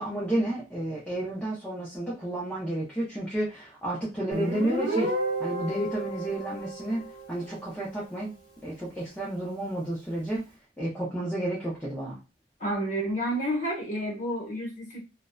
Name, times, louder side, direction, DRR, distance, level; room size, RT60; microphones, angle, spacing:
voice 1, 0.0-5.1 5.4-7.0 7.3-8.3 8.6-10.4 10.8-12.2, right 1 dB, 10° left, -6 dB, 0.6 m, -31 dB
Guitar, 4.3-7.8, right 1 dB, 45° right, 0.9 m, -32 dB
voice 2, 12.6-15.0, equal, 40° left, -1 dB, 1.0 m, -30 dB
2.6 x 2.1 x 2.2 m, 0.30 s
head